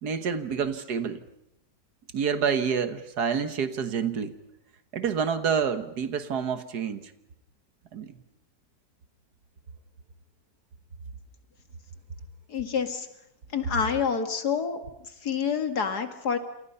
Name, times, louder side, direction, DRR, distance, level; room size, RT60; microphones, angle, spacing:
voice 1, 0.0-1.2 2.1-4.3 4.9-7.1 7.9-8.2, right 6 dB, 80° right, 10 dB, 1.9 m, -28 dB
voice 2, 12.5-13.1 13.5-14.8 15.2-16.4, left 6 dB, 85° left, 7 dB, 2.6 m, -27 dB
28.5 x 27.0 x 5.6 m, 0.81 s
omnidirectional pair, 1.7 m